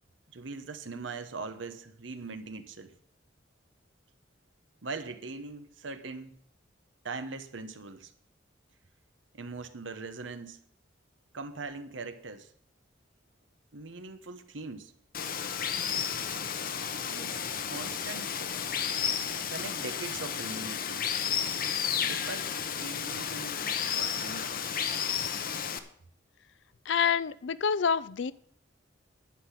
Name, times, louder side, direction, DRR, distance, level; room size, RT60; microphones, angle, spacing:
voice 1, 0.3-2.9 4.8-6.4 7.0-8.1 9.3-10.6 11.3-12.5 13.7-14.9 16.9-18.5 19.5-21.1 22.0-22.5 22.8-25.0, right 3 dB, 85° right, 10 dB, 1.1 m, -41 dB
Water, 15.1-25.8, left 8 dB, 50° left, 0.9 m, -32 dB
voice 2, 26.9-28.3, left 6 dB, 70° left, 18 dB, 0.5 m, -27 dB
11.0 x 5.9 x 8.3 m, 0.64 s
head